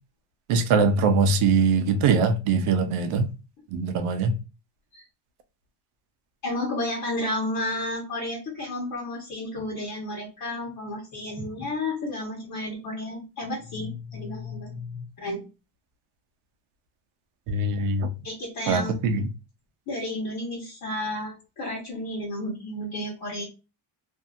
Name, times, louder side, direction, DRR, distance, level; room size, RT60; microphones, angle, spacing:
voice 1, 0.5-3.3 3.7-4.4 17.5-18.1 18.7-19.2, right 4 dB, 80° right, 0.8 m, -22 dB
voice 2, 6.4-15.5 18.2-18.9 19.9-23.5, left 1 dB, 45° left, 1.2 m, -32 dB
2.7 x 2.7 x 2.4 m
cardioid pair, 135°, 49 cm